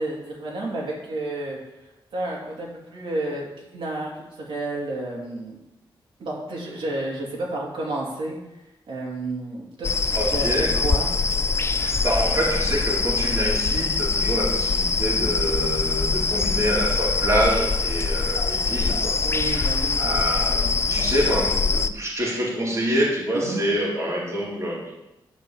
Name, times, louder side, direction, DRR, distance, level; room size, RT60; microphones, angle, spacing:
voice 1, 0.0-1.6 2.1-5.6 6.2-8.4 8.9-11.1 19.2-20.0 23.3-23.7, right 2 dB, 80° right, -3 dB, 2.6 m, -31 dB
Chirping Bird, 9.8-21.9, left 4 dB, 30° left, 0.4 m, -23 dB
voice 2, 10.1-10.8 11.8-19.1 19.5-19.7 20.0-24.9, equal, 35° right, -4 dB, 2.4 m, -26 dB
10.5 x 4.4 x 7.2 m, 0.94 s
wide cardioid pair, 175°, 9 cm